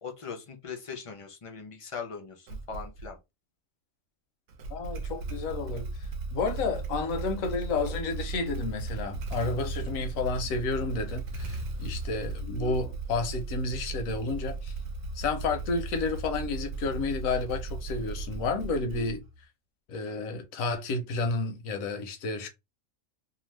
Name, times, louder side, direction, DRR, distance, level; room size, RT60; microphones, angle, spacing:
voice 1, 0.0-3.2, left 6 dB, 50° left, 0.4 m, -40 dB
Motorcycle / Engine starting, 2.5-3.1 4.5-19.4, right 3 dB, 80° right, 1.0 m, -36 dB
voice 2, 4.7-5.9 6.3-14.7 15.1-19.2 19.9-22.5, left 3 dB, 85° left, 1.1 m, -31 dB
2.7 x 2.3 x 3.2 m
omnidirectional pair, 1.4 m